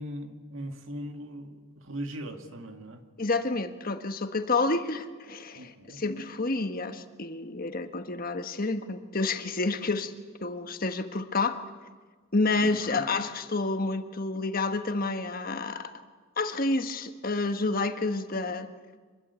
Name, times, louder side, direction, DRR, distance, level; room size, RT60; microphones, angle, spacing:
voice 1, 0.0-3.0 5.6-6.0 12.8-13.0, equal, 65° right, 6 dB, 2.2 m, -39 dB
voice 2, 3.2-10.1 10.4-11.6 12.3-15.9 16.4-18.7, left 3 dB, 40° left, 8 dB, 1.5 m, -29 dB
25.5 x 22.0 x 8.3 m, 1.5 s
head